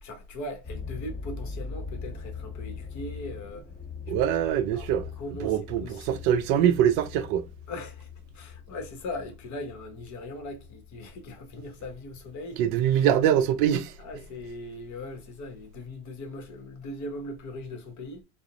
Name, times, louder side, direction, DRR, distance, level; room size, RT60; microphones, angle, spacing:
voice 1, 0.0-3.7 4.1-4.4 4.7-6.2 7.7-12.6 12.9-13.1 14.0-18.2, left 1 dB, 35° left, 0.9 m, -40 dB
sound 1, 0.6-12.9 13.5-13.9 14.5-14.6 14.9-15.0, left 5 dB, 20° left, 1.3 m, -41 dB
voice 2, 4.1-5.1 5.4-7.5 12.6-13.9, right 10 dB, 60° right, 0.5 m, -23 dB
2.4 x 2.0 x 2.8 m
supercardioid pair, 110°, 48 cm